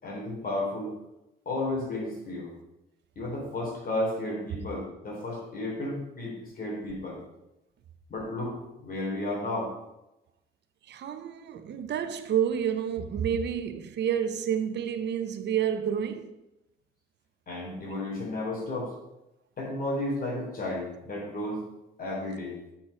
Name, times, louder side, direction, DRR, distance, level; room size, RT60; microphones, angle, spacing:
voice 1, 0.0-0.9 1.4-2.5 3.1-7.2 8.1-9.7 17.5-18.9 19.6-21.6 22.0-22.6, left 1 dB, 45° left, 3.4 m, -33 dB
voice 2, 10.9-16.3, right 8 dB, 60° right, 0.8 m, -29 dB
6.1 x 5.8 x 6.3 m
cardioid pair, 90°, 20 cm